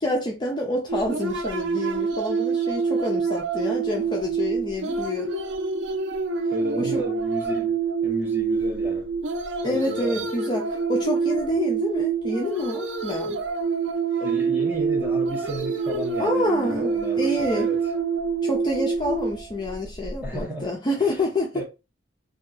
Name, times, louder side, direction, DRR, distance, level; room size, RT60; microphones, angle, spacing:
voice 1, 0.0-5.4 6.8-7.0 9.6-13.4 16.2-16.9 17.2-17.7 18.4-21.5, left 1 dB, 25° left, 0.5 m, -27 dB
sound 1, 0.9-20.4, right 5 dB, 90° right, 0.4 m, -26 dB
voice 2, 6.5-7.8 8.0-9.1 9.6-10.3 14.2-17.8 20.2-20.7 21.0-21.2 21.5-21.6, right 1 dB, 10° right, 0.9 m, -32 dB
2.7 x 2.3 x 2.3 m
head